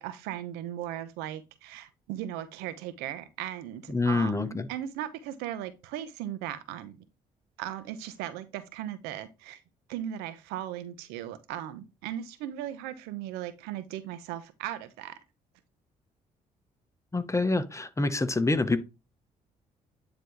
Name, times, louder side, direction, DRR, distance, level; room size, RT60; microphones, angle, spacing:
voice 1, 0.0-7.0 7.6-9.6 9.9-15.2, right 11 dB, 90° right, 0.9 m, -37 dB
voice 2, 3.9-4.7 17.1-18.8, left 3 dB, 20° left, 1.2 m, -26 dB
9.7 x 4.0 x 3.3 m
supercardioid pair, 60°, 16 cm